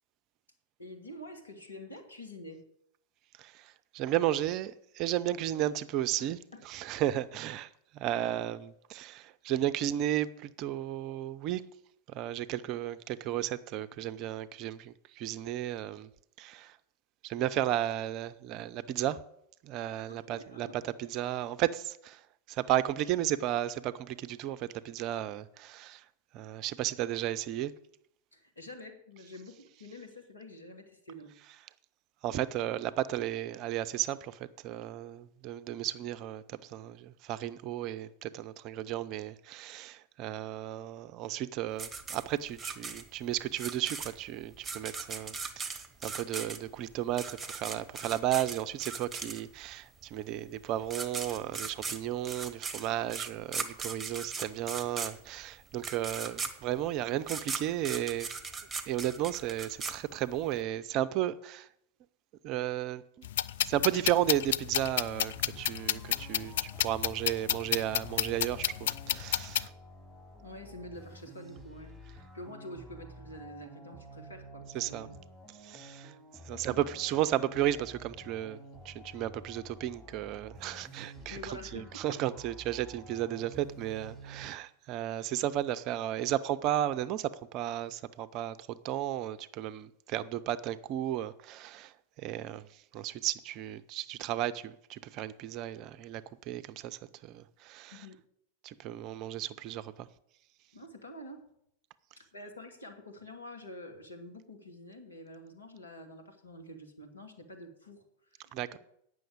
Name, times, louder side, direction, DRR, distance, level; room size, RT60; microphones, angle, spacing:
voice 1, 0.8-2.6 6.2-6.7 20.1-20.7 28.3-31.4 70.4-75.2 76.5-76.9 80.7-80.8 81.3-82.2 97.9-98.2 100.7-101.5 102.1-108.0 108.3-108.8, left 1 dB, 75° left, 1.9 m, -47 dB
voice 2, 3.4-6.4 6.6-11.6 12.1-16.1 16.4-16.8 17.2-19.2 19.6-26.1 26.3-27.7 32.2-58.3 58.8-61.7 62.4-63.3 63.6-69.7 74.7-75.1 75.5-76.1 76.4-98.0 98.6-100.1 108.5-108.7, right 12 dB, 40° right, 0.5 m, -34 dB
sound 1, 41.8-49.7 50.6-50.7 50.9-60.5, right 4 dB, 15° right, 1.2 m, -38 dB
sound 2, 63.2-69.7, left 11 dB, 60° left, 0.3 m, -31 dB
sound 3, 65.3-84.4, right 1 dB, 5° left, 4.2 m, -50 dB
9.1 x 6.3 x 8.6 m
figure-of-eight pair, 90°, 0 cm